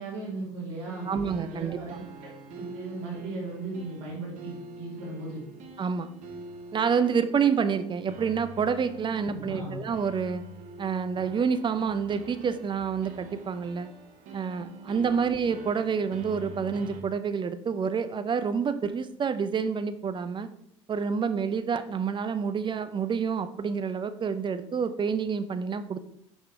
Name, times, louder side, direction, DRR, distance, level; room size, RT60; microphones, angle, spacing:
voice 1, 0.0-1.1 1.4-2.3 2.6-5.4 9.2-9.8 15.1-15.2, right 3 dB, 75° right, -4 dB, 2.7 m, -37 dB
sound 1, 0.8-17.0, right 2 dB, 55° right, 1.1 m, -45 dB
voice 2, 1.1-2.0 5.8-6.1 6.7-10.4 10.8-13.9 14.3-20.5 20.9-26.0, right 6 dB, 30° right, 11 dB, 0.6 m, -28 dB
5.7 x 5.1 x 3.6 m, 0.72 s
hypercardioid pair, 65°, 16 cm